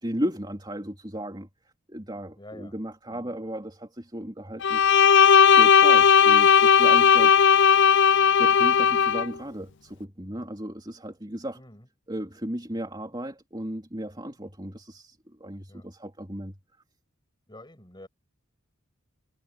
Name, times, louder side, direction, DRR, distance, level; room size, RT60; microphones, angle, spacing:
voice 1, 0.0-1.5 1.9-4.9 5.5-7.3 7.6-7.7 8.4-11.6 12.1-16.6, equal, 20° right, 3.6 m, -35 dB
voice 2, 2.3-2.8 3.1-3.4 11.5-11.9 15.7-15.9 17.5-18.1, left 1 dB, 20° left, 7.2 m, -47 dB
Bowed string instrument, 4.6-9.3, left 7 dB, 55° left, 0.5 m, -17 dB
head